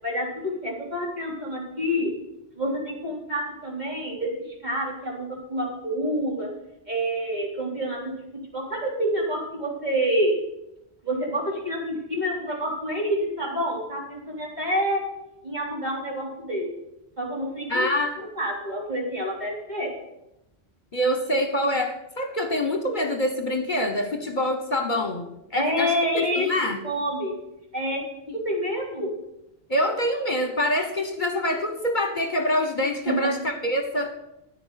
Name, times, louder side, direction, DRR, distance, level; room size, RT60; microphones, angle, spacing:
voice 1, 0.0-2.1 2.6-6.5 6.9-8.0 8.5-10.4 11.0-15.0 15.4-16.7 17.2-17.9 18.4-19.9 25.5-26.5 26.8-27.3 27.7-28.0 28.4-29.1 33.1-33.2, equal, 40° right, -3 dB, 4.2 m, -27 dB
voice 2, 17.7-18.2 20.9-26.8 29.7-34.1, left 1 dB, 45° left, 6 dB, 1.3 m, -25 dB
14.0 x 9.8 x 5.8 m, 0.88 s
omnidirectional pair, 1.1 m